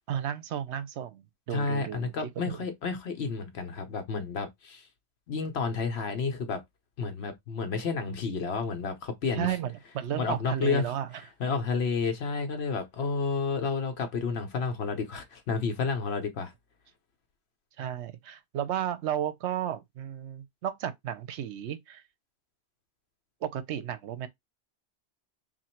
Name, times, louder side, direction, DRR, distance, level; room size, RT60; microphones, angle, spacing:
voice 1, 0.1-2.6 9.3-11.2 17.8-22.0 23.4-24.3, right 10 dB, 80° right, 0.9 m, -33 dB
voice 2, 1.5-4.8 5.3-6.6 7.0-9.5 10.2-10.8 11.4-16.5, left 4 dB, 70° left, 1.0 m, -31 dB
2.9 x 2.5 x 4.3 m
omnidirectional pair, 1.2 m